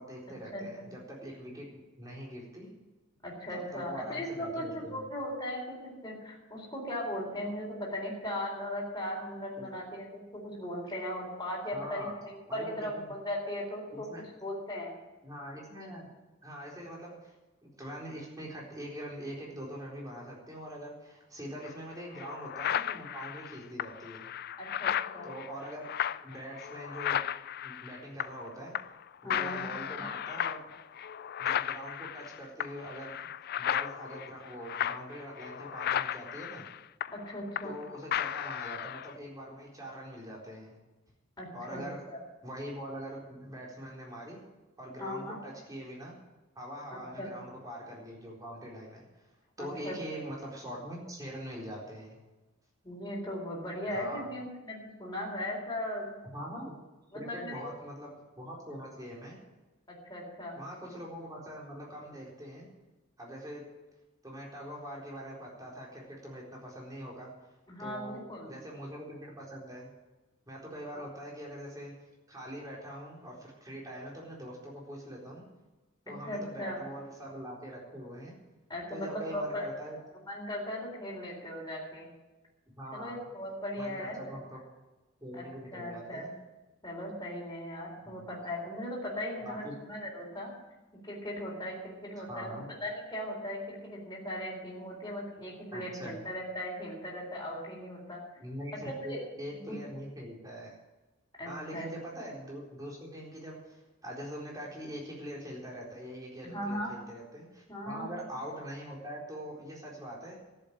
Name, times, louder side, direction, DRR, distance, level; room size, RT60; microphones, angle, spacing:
voice 1, 0.0-2.7 3.5-5.0 9.6-9.8 11.7-12.1 12.5-13.1 13.9-14.2 15.2-16.1 16.4-17.3 17.6-24.3 25.2-25.9 26.2-27.2 27.6-28.7 29.2-30.6 31.4-33.2 33.6-36.6 37.6-40.8 41.5-42.0 42.4-44.4 44.8-46.1 46.6-49.0 49.6-52.2 53.9-54.3 56.3-56.7 57.1-59.4 60.5-62.7 63.2-63.6 64.2-67.3 67.8-68.2 68.5-69.9 70.5-71.9 72.3-75.4 76.1-78.3 78.9-80.0 82.8-83.2 83.8-84.6 85.2-86.3 88.1-88.4 89.4-89.7 92.3-92.6 95.7-96.2 98.4-100.7 101.5-110.4, equal, 15° right, -3 dB, 4.2 m, -43 dB
voice 2, 3.2-14.1 14.4-14.9 24.6-25.3 29.2-30.0 37.3-37.7 41.4-42.2 45.0-45.4 46.9-47.3 49.6-50.0 52.8-56.1 57.1-57.6 59.9-60.6 67.7-68.5 70.9-71.0 76.2-76.8 78.7-79.7 80.3-82.1 82.9-84.4 85.3-85.4 85.7-86.3 86.8-90.5 91.0-98.2 98.9-99.2 99.5-99.8 101.4-101.9 106.4-106.9 107.7-108.1, left 1 dB, 20° left, -5 dB, 4.0 m, -38 dB
sound 1, 21.6-21.7 22.2-28.5 28.7-29.0 29.3-37.8 38.1-39.1, left 10 dB, 50° left, 0.4 m, -35 dB
13.5 x 8.0 x 8.8 m, 1.1 s
head